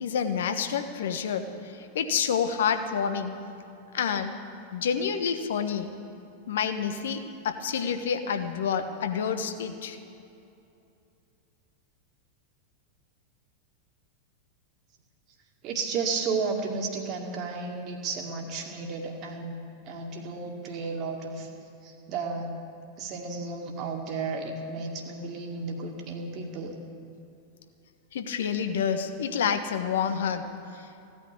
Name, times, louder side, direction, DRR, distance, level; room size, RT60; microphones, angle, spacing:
voice 1, 0.0-1.5 1.9-3.4 3.9-4.4 4.7-5.9 6.5-10.0 28.1-30.5, left 7 dB, 60° left, 8 dB, 1.2 m, -28 dB
voice 2, 15.6-19.6 19.8-21.5 21.8-22.6 23.0-26.8, right 4 dB, 35° right, 1 dB, 2.0 m, -33 dB
16.5 x 9.7 x 9.0 m, 2.7 s
figure-of-eight pair, 90°, 0 cm